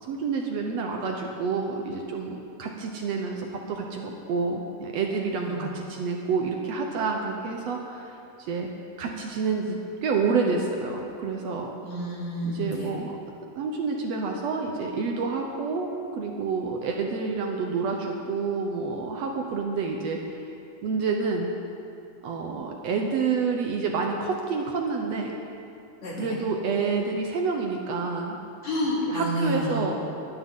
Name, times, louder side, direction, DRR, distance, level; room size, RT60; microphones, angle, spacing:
voice 1, 0.1-8.1 8.4-8.7 9.0-11.7 12.4-13.1 13.6-20.2 20.8-21.5 22.2-25.4 26.2-28.4 29.1-29.9, right 4 dB, 65° right, 1 dB, 1.8 m, -28 dB
voice 2, 11.8-12.9 26.0-26.4 28.6-29.8, equal, 55° left, -6 dB, 4.1 m, -29 dB
20.5 x 10.5 x 3.8 m, 2.6 s
omnidirectional pair, 3.6 m